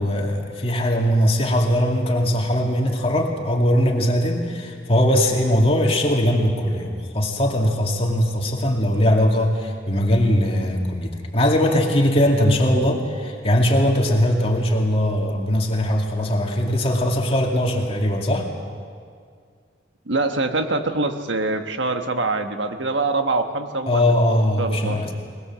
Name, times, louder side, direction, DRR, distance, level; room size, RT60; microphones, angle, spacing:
voice 1, 0.0-18.5 23.9-25.1, equal, 30° left, 1 dB, 2.4 m, -20 dB
voice 2, 20.1-25.0, right 3 dB, 80° right, 7 dB, 1.4 m, -24 dB
21.5 x 20.5 x 7.5 m, 2.1 s
head